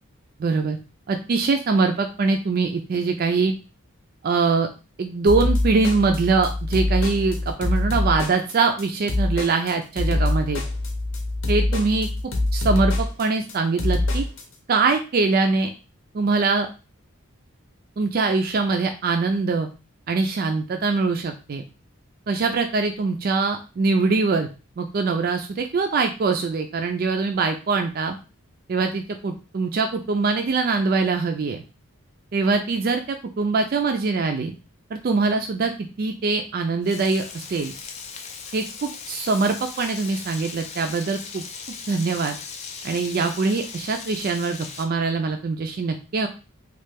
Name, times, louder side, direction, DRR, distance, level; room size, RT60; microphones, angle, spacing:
voice 1, 0.4-0.8 1.1-3.5 4.2-4.7 5.0-10.6 11.5-12.1 12.5-14.2 14.7-15.7 16.1-16.7 18.0-19.7 20.1-21.6 22.3-24.5 24.8-28.2 28.7-31.6 32.3-34.5 34.9-37.7 38.5-41.4 41.9-42.4 42.8-46.3, right 4 dB, 45° right, 5 dB, 0.3 m, -23 dB
sound 1, 5.3-14.4, left 2 dB, 60° left, 0.7 m, -24 dB
Frying (food), 36.8-44.8, left 5 dB, 30° left, 0.3 m, -38 dB
3.1 x 2.3 x 3.3 m, 0.31 s
head